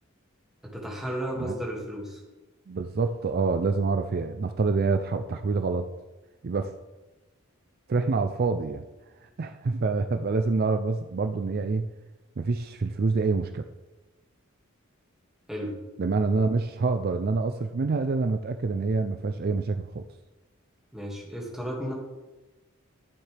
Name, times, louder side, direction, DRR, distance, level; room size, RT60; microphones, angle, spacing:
voice 1, 0.6-2.2 15.5-15.8 20.9-21.9, equal, ahead, -3 dB, 2.1 m, -33 dB
voice 2, 2.7-5.9 6.4-6.7 7.9-8.8 9.4-11.9 12.4-13.6 16.0-20.0, right 4 dB, 45° right, 8 dB, 0.4 m, -26 dB
13.5 x 7.2 x 3.4 m, 1.1 s
head